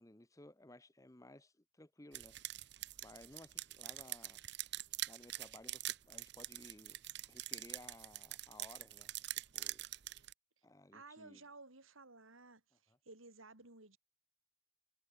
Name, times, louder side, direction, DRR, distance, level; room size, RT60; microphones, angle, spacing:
voice 1, 0.0-2.4 3.0-4.4 5.1-7.0 7.3-9.8 10.6-11.4, left 1 dB, 15° left, 0.9 m, -58 dB
sound 1, 2.1-10.3, right 15 dB, 55° right, 0.8 m, -45 dB
voice 2, 10.9-14.0, right 3 dB, 80° right, 5.3 m, -56 dB
head